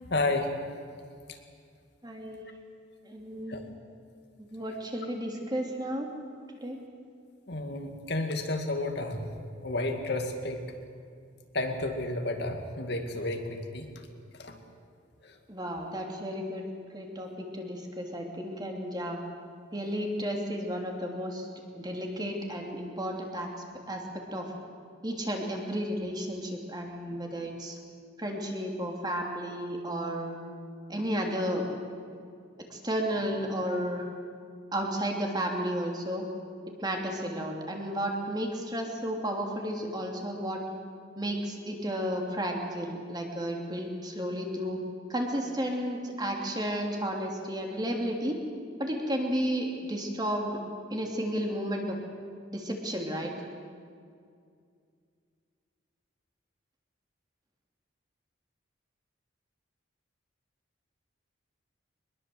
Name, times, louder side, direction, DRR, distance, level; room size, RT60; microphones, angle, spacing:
voice 1, 0.0-0.5 1.3-1.4 3.5-3.6 7.5-9.3 9.6-10.6 11.5-13.9 14.3-14.6 15.2-15.4, left 2 dB, 55° left, 4 dB, 2.2 m, -31 dB
voice 2, 2.0-2.5 3.0-3.6 4.4-6.1 6.6-6.8 15.5-16.6 16.9-19.2 19.7-21.5 21.7-23.5 23.9-24.5 25.0-27.8 28.2-30.4 30.9-31.6 32.7-34.0 34.7-36.2 36.8-40.6 41.2-44.8 45.1-48.4 48.8-50.6 50.9-52.0 52.5-53.3, equal, 20° right, 1 dB, 3.0 m, -32 dB
23.5 x 21.5 x 7.9 m, 2.3 s
head